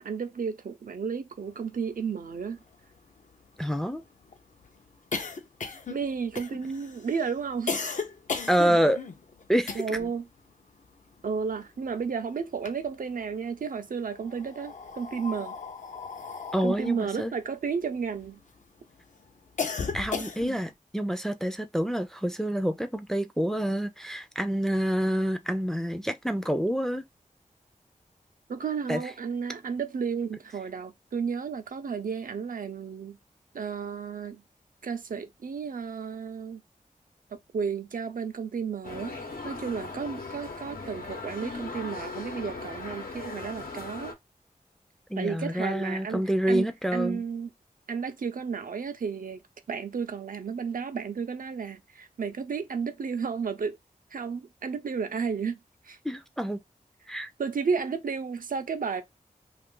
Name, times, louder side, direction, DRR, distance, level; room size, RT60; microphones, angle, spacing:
voice 1, 0.0-2.6 5.9-7.7 9.8-10.2 11.2-15.6 16.6-18.4 28.5-33.2 33.5-34.4 34.8-36.6 37.5-44.1 45.2-46.2 46.5-46.7 46.9-47.5 47.9-49.4 49.7-53.8 54.1-55.6 55.9-56.0 57.4-59.0, right 6 dB, 70° right, 0.5 m, -32 dB
sound 1, 2.0-2.1 2.3-2.4 2.7-10.2 10.5-12.1 12.4-13.3 14.1-18.6 19.0-20.7, left 5 dB, 60° left, 0.6 m, -36 dB
voice 2, 3.6-4.0 8.5-9.0 9.5-9.8 16.5-17.3 19.9-27.0 28.9-29.1 45.1-47.2 56.0-56.6 57.1-57.3, equal, 5° left, 0.4 m, -27 dB
sound 2, 38.8-44.1, left 3 dB, 90° left, 1.0 m, -39 dB
2.5 x 2.4 x 3.7 m
wide cardioid pair, 70°, 15 cm